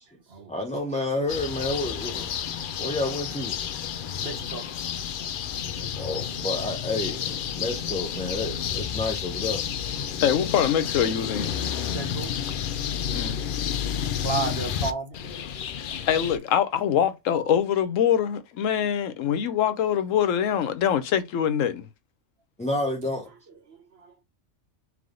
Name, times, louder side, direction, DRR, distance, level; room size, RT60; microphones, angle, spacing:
voice 1, 0.5-2.3 2.8-3.6 6.0-9.6 22.6-23.3, left 2 dB, 5° left, 0.6 m, -30 dB
sound 1, 1.3-16.4, left 8 dB, 60° left, 0.5 m, -30 dB
voice 2, 4.2-4.7 5.6-6.6 11.9-12.4 14.2-15.3 23.5-24.1, right 4 dB, 55° right, 1.2 m, -34 dB
voice 3, 10.2-11.5 13.1-13.4 15.8-21.9, left 9 dB, 85° left, 1.1 m, -24 dB
3.5 x 3.4 x 3.7 m
omnidirectional pair, 1.3 m